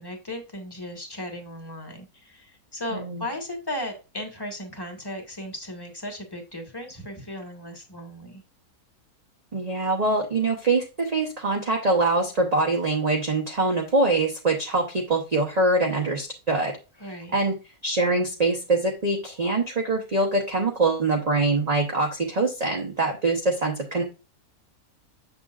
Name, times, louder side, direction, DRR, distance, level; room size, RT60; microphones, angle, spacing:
voice 1, 0.0-8.4 17.0-17.3, left 1 dB, 15° left, 3 dB, 1.4 m, -36 dB
voice 2, 2.9-3.3 9.5-16.8 17.3-17.6 17.8-24.0, right 2 dB, 30° right, 0 dB, 0.9 m, -24 dB
7.0 x 6.7 x 2.4 m, 0.29 s
omnidirectional pair, 1.6 m